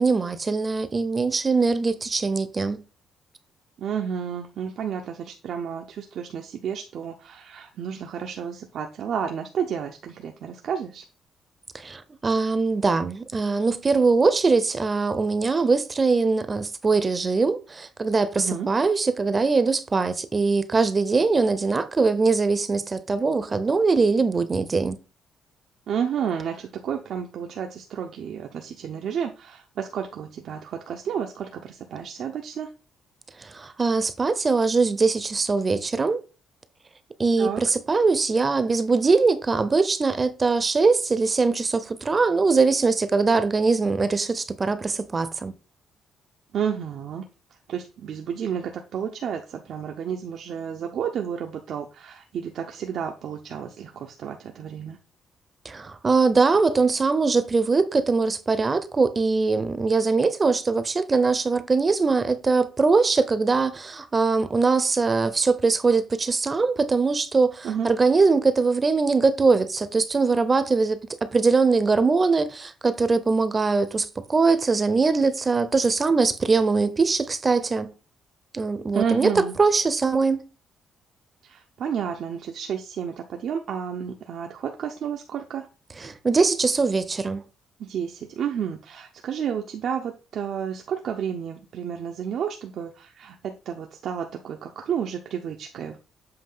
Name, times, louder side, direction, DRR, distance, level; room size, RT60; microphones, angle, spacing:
voice 1, 0.0-2.8 11.7-25.0 33.4-36.2 37.2-45.5 55.6-77.9 78.5-79.3 79.6-80.4 86.0-87.4, right 4 dB, 30° right, 0.7 m, -22 dB
voice 2, 3.8-11.0 18.4-18.7 25.9-32.7 37.4-37.6 46.5-47.2 47.7-55.0 67.6-67.9 78.9-79.5 81.4-85.7 87.8-96.0, right 8 dB, 70° right, 0.8 m, -31 dB
7.8 x 2.7 x 5.5 m
cardioid pair, 90°, 0 cm